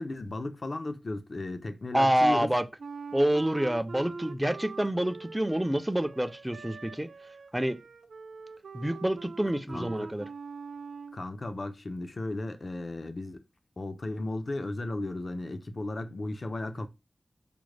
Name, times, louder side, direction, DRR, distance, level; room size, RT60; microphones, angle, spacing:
voice 1, 0.0-2.5 9.7-10.1 11.1-13.5 13.8-16.9, left 2 dB, 45° left, 0.5 m, -35 dB
voice 2, 1.9-2.6 3.1-7.1 7.5-7.8 8.7-10.3, right 1 dB, 10° right, 0.4 m, -27 dB
Wind instrument woodwind instrument, 2.8-11.2, right 4 dB, 80° right, 0.3 m, -43 dB
5.0 x 2.1 x 3.1 m
wide cardioid pair, 85°, 0 cm